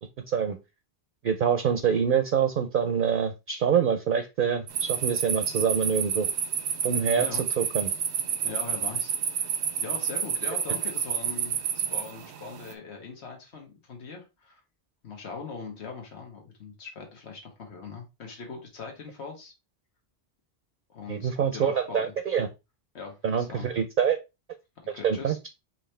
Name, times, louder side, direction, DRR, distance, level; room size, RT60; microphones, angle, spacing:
voice 1, 1.2-6.3 6.8-7.3 7.6-7.9 21.1-22.5 23.2-24.2 25.0-25.5, right 7 dB, 60° right, 8 dB, 0.7 m, -25 dB
sound 1, 4.7-12.7, right 8 dB, 90° right, 0.9 m, -29 dB
voice 2, 7.2-7.5 8.4-9.5 9.8-14.6 15.0-19.5 20.9-22.1 22.9-23.7 24.8-25.4, left 4 dB, 85° left, 2 dB, 1.5 m, -41 dB
4.8 x 3.0 x 3.2 m, 0.25 s
omnidirectional pair, 1.1 m